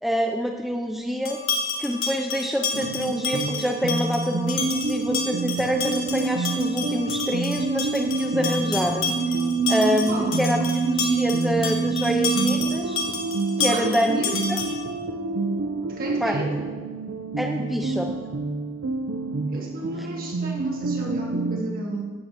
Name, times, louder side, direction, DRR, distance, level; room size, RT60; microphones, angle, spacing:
voice 1, 0.0-1.4 1.8-9.1 9.7-13.0 13.6-14.6 16.2-16.4 17.4-18.1 20.0-20.1, equal, ahead, 2 dB, 0.4 m, -26 dB
sound 1, 1.3-14.9, left 4 dB, 75° left, 1.4 m, -30 dB
sound 2, 2.7-21.6, right 3 dB, 70° right, 0.6 m, -27 dB
voice 2, 13.7-14.7 15.9-16.5 19.5-22.1, right 1 dB, 45° right, -1 dB, 1.6 m, -32 dB
15.5 x 7.6 x 2.9 m, 1.4 s
head